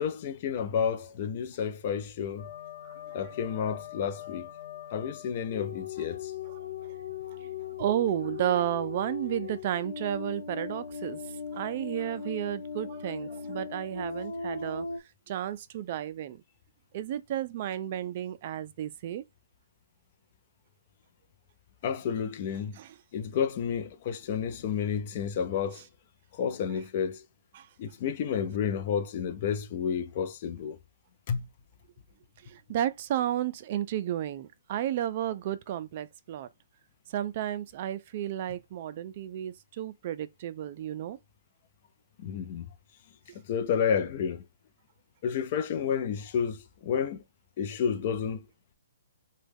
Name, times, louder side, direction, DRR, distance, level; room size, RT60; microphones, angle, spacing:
voice 1, 0.0-2.5 3.1-4.5 4.9-6.3 21.8-22.8 23.1-25.8 26.3-27.2 27.8-30.8 31.3-31.5 42.2-42.7 43.5-44.4 45.2-47.2 47.6-48.5, left 7 dB, 35° left, 0.5 m, -30 dB
sound 1, 2.4-15.0, left 6 dB, 90° left, 0.6 m, -39 dB
voice 2, 2.8-3.2 6.5-6.6 7.4-7.5 7.8-11.2 11.5-14.9 15.3-16.4 16.9-19.2 22.8-22.9 27.5-27.7 32.4-36.5 37.1-41.2, right 11 dB, 35° right, 0.4 m, -32 dB
3.0 x 2.2 x 3.4 m
hypercardioid pair, 160°, 0 cm